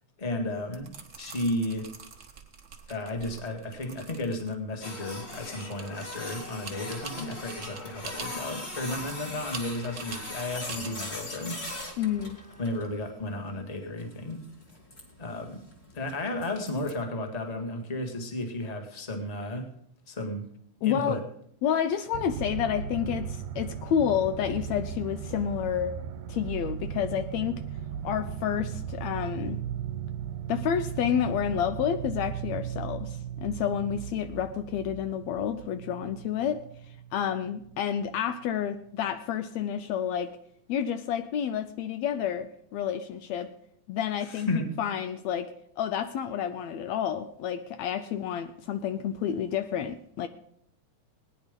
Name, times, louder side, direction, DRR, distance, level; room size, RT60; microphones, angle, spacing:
voice 1, 0.2-1.8 2.9-11.6 12.6-14.4 15.2-15.6 15.9-19.7 20.1-20.5 20.8-21.2 44.2-44.7, left 1 dB, 15° left, 4 dB, 1.4 m, -33 dB
sound 1, 0.6-13.3, right 5 dB, 65° right, 0.6 m, -46 dB
Printer, 4.8-16.9, left 2 dB, 35° left, 2.7 m, -41 dB
voice 2, 12.0-12.4 20.8-21.2 21.6-25.9 26.3-27.6 28.0-29.6 30.5-36.6 37.1-40.3 40.7-43.5 43.9-44.5 44.8-45.5 45.8-50.3, left 9 dB, 75° left, 10 dB, 1.8 m, -29 dB
sound 2, 22.1-37.8 38.3-38.4, right 9 dB, 85° right, 2.2 m, -37 dB
18.5 x 9.9 x 5.2 m, 0.70 s
omnidirectional pair, 3.4 m